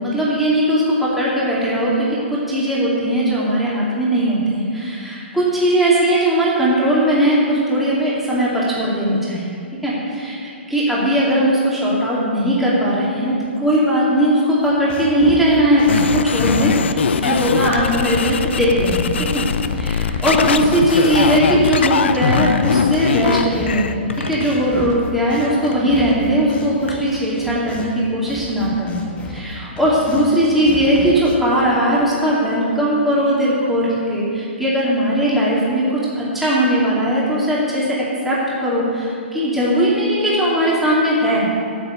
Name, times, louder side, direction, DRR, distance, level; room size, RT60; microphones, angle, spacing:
voice 1, 0.0-9.5 9.8-10.4 10.7-19.4 19.7-24.0 24.2-29.0 29.3-41.4, equal, 5° right, -8 dB, 2.7 m, -18 dB
sound 1, 14.6-20.8 21.1-28.0 28.3-30.3 30.6-31.4, left 1 dB, 20° left, 1.3 m, -33 dB
sound 2, 15.9-23.9, left 6 dB, 70° left, 0.6 m, -20 dB
Telephone, 16.0-16.3 17.6-18.1 19.4-19.7 20.9-21.7 22.6-23.0 24.1-24.7 25.6-25.8 26.9-27.3, left 3 dB, 90° left, 1.2 m, -32 dB
9.6 x 8.1 x 8.1 m, 2.4 s
hypercardioid pair, 125°, 6 cm